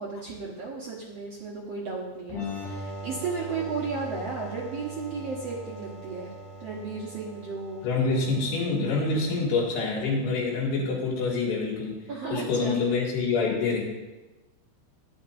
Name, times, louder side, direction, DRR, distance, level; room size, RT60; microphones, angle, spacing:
voice 1, 0.0-6.3 6.6-7.9 12.1-12.8, right 4 dB, 80° right, -5 dB, 1.4 m, -34 dB
sound 1, 2.3-9.7, equal, 45° left, 2.9 m, -40 dB
voice 2, 7.8-12.0 12.3-13.9, left 4 dB, 75° left, -4 dB, 4.3 m, -26 dB
12.5 x 10.0 x 2.6 m, 1.1 s
omnidirectional pair, 4.8 m